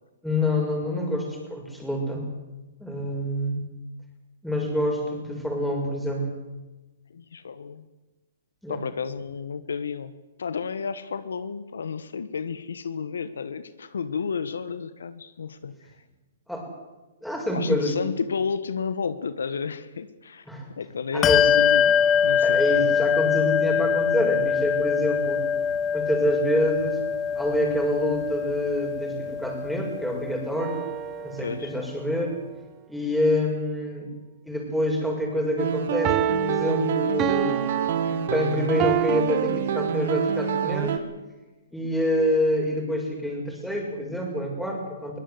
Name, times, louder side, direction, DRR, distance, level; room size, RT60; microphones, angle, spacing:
voice 1, 0.2-2.3 2.8-3.6 4.4-6.3 8.6-8.8 16.5-16.7 17.2-17.9 20.5-20.7 21.1-21.5 22.4-25.4 25.9-27.0 27.3-30.8 31.2-32.4 32.9-34.1 34.4-37.7 38.1-41.0 41.7-45.2, left 1 dB, ahead, 0 dB, 6.4 m, -27 dB
voice 2, 7.1-7.8 8.7-10.1 10.4-15.9 17.5-20.4 20.8-21.9 22.2-22.6 31.4-31.7, left 6 dB, 80° left, 13 dB, 1.4 m, -31 dB
Bell, 21.2-31.2, left 7 dB, 25° left, 1.0 m, -24 dB
sound 1, 30.6-31.6 36.0-39.2, right 15 dB, 25° right, 0.8 m, -29 dB
sound 2, 35.6-41.0, right 8 dB, 60° right, 2.2 m, -27 dB
22.5 x 18.0 x 8.1 m, 1.1 s
hypercardioid pair, 130°, 0 cm